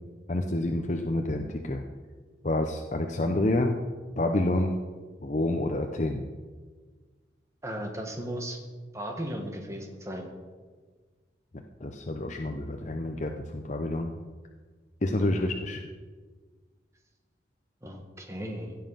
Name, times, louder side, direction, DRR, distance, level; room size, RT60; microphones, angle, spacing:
voice 1, 0.3-1.8 2.4-3.8 4.2-4.8 5.2-6.2 11.5-14.1 15.0-15.8, left 1 dB, 40° left, 3 dB, 0.7 m, -28 dB
voice 2, 7.6-8.6 8.9-10.3 15.2-15.5 17.8-18.8, equal, 15° right, 3 dB, 1.5 m, -36 dB
16.0 x 7.4 x 5.7 m, 1.5 s
head